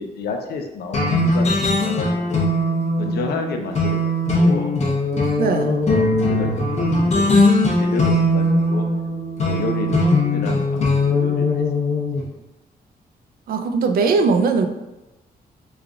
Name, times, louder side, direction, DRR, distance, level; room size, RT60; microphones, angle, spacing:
voice 1, 0.0-2.4 3.0-4.8 5.8-8.8 9.4-10.0 10.3-11.7 12.2-12.4, left 4 dB, 85° left, 4 dB, 0.5 m, -30 dB
sound 1, 0.9-12.2, left 1 dB, 45° left, 0.8 m, -20 dB
voice 2, 5.4-5.7 13.5-14.7, right 4 dB, 70° right, 6 dB, 0.4 m, -19 dB
3.2 x 2.4 x 3.6 m, 0.97 s
wide cardioid pair, 140°, 16 cm